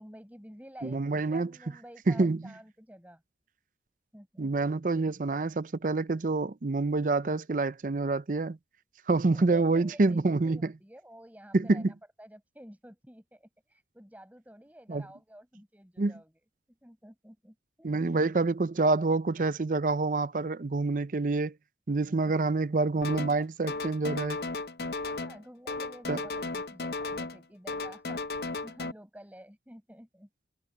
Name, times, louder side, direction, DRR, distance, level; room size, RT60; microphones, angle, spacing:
voice 1, 0.0-3.2 4.1-4.5 9.3-16.3 16.8-18.2 25.0-28.2 28.6-30.3, equal, 10° right, 6.8 m, -51 dB
voice 2, 0.8-1.5 2.1-2.4 4.4-8.6 9.1-10.7 11.5-11.9 14.9-15.0 16.0-16.1 17.8-21.5 21.9-24.4 26.1-26.2, right 3 dB, 45° right, 0.5 m, -27 dB
sound 1, 23.0-23.4 23.7-25.4 25.7-27.4 27.7-28.9, left 3 dB, 60° left, 0.6 m, -35 dB
head